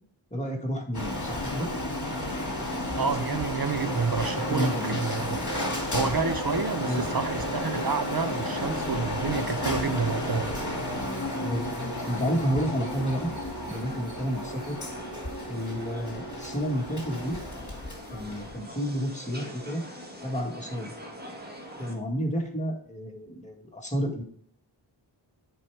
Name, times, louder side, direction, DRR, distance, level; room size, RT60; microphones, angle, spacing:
voice 1, 0.3-1.7 4.5-5.0 6.8-7.0 11.4-11.7 12.0-13.3 13.7-14.8 15.5-17.4 18.1-19.8 20.2-20.9 21.8-24.2, equal, 15° left, 0 dB, 1.9 m, -30 dB
Printer, 0.9-18.6, left 1 dB, 40° left, 2.1 m, -32 dB
sound 1, 2.2-21.9, equal, 20° right, 2.1 m, -44 dB
voice 2, 3.0-5.4 5.9-10.6, right 5 dB, 50° right, 10 dB, 0.9 m, -29 dB
9.9 x 4.6 x 3.4 m, 0.62 s
wide cardioid pair, 50°, 47 cm